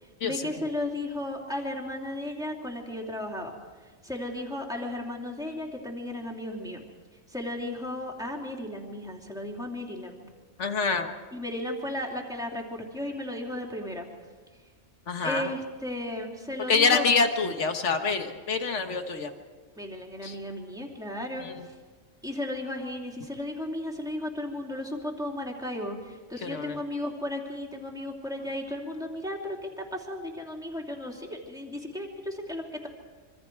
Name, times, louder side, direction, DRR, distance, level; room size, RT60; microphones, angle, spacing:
voice 1, 0.0-3.6 4.0-6.8 7.3-10.3 11.3-14.1 15.2-17.1 19.8-21.7 22.2-32.9, left 1 dB, 5° right, 0 dB, 3.0 m, -35 dB
voice 2, 10.6-11.1 15.1-15.5 16.7-19.3 20.2-20.3 21.4-21.6 26.4-26.8, left 4 dB, 65° left, 6 dB, 1.8 m, -26 dB
26.0 x 24.5 x 4.7 m, 1.4 s
omnidirectional pair, 1.3 m